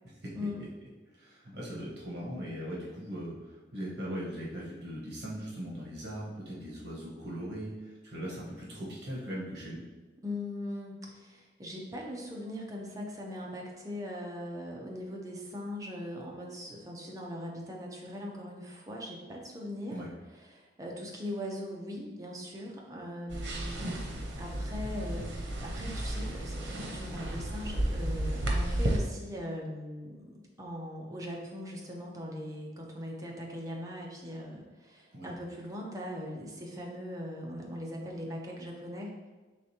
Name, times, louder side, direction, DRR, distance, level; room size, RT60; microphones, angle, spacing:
voice 1, 1.1-9.8 19.9-20.1 35.1-35.3, equal, 65° right, -5 dB, 1.1 m, -39 dB
voice 2, 10.2-20.0 20.5-39.2, left 1 dB, 20° right, -1 dB, 0.6 m, -40 dB
sound 1, 23.3-29.0, right 1 dB, 85° right, 0.7 m, -33 dB
4.9 x 3.3 x 2.8 m, 1.3 s
head